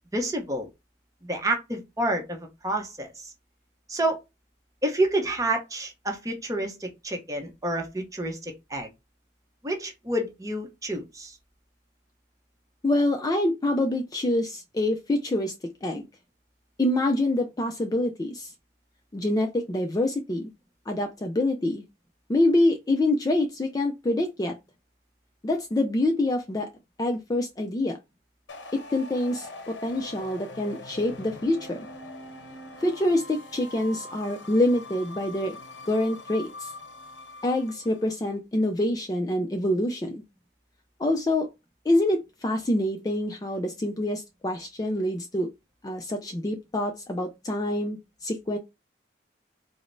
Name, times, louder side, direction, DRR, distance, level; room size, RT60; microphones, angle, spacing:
voice 1, 0.1-0.7 1.2-3.1 3.9-4.2 4.8-8.9 9.6-11.3, right 1 dB, 20° right, 0.7 m, -29 dB
voice 2, 12.8-15.5 15.8-16.0 16.8-18.5 19.1-20.5 20.9-21.8 22.3-24.5 25.4-26.7 27.0-28.0 28.7-31.9 32.8-35.6 35.9-36.7 37.4-40.2 41.0-41.5 41.9-45.5 45.8-48.6, left 1 dB, 20° left, 0.3 m, -26 dB
sound 1, 28.5-38.1, left 2 dB, 85° left, 0.6 m, -43 dB
4.9 x 2.0 x 2.5 m
head